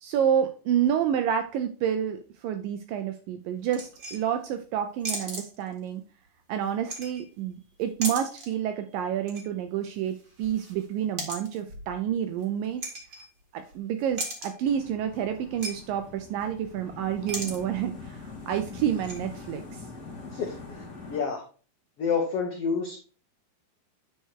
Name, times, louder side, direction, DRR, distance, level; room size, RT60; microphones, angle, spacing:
voice 1, 0.0-6.0 6.5-12.8 13.5-19.8, right 9 dB, 80° right, 7 dB, 2.0 m, -29 dB
sound 1, 3.7-4.5 5.0-5.9 6.6-7.5 7.8-8.6 8.9-9.5 9.8-13.7 14.0-14.7 15.1-15.2 15.5-15.7 16.0-16.1 16.4-16.7 17.1-17.6 17.9-18.0 18.6-19.2, right 2 dB, 30° right, 1.6 m, -37 dB
sound 2, 14.6-21.2, left 4 dB, 30° left, 2.5 m, -43 dB
voice 2, 20.3-20.8 21.1-21.4 22.0-23.1, left 5 dB, 75° left, 1 dB, 1.4 m, -29 dB
9.4 x 4.4 x 4.6 m, 0.37 s
omnidirectional pair, 4.5 m